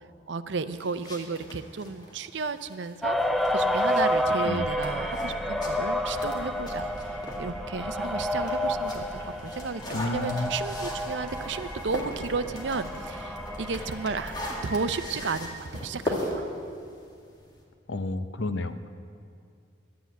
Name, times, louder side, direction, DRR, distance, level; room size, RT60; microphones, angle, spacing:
voice 1, 0.3-3.2 3.5-6.9 7.4-14.3 14.6-16.5, right 4 dB, 75° right, 12 dB, 0.6 m, -33 dB
sound 1, 0.7-7.5 7.9-17.6, left 1 dB, 25° left, 2.1 m, -39 dB
sound 2, 3.0-14.7, equal, ahead, 0.6 m, -30 dB
sound 3, 4.6-15.4, equal, 70° left, 3.5 m, -43 dB
voice 2, 9.9-10.5 17.9-18.8, left 2 dB, 85° left, 10 dB, 0.8 m, -30 dB
12.0 x 9.6 x 9.2 m, 2.3 s
head